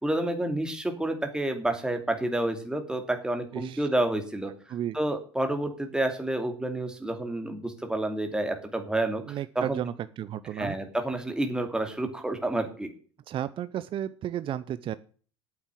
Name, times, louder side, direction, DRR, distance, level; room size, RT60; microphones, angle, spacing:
voice 1, 0.0-4.5 4.9-9.8 10.5-12.9, right 1 dB, 5° right, 5 dB, 2.7 m, -29 dB
voice 2, 3.5-3.8 4.7-5.0 9.3-10.8 13.3-14.9, right 10 dB, 35° right, 15 dB, 0.6 m, -33 dB
9.5 x 8.1 x 7.7 m, 0.42 s
hypercardioid pair, 75°, 14 cm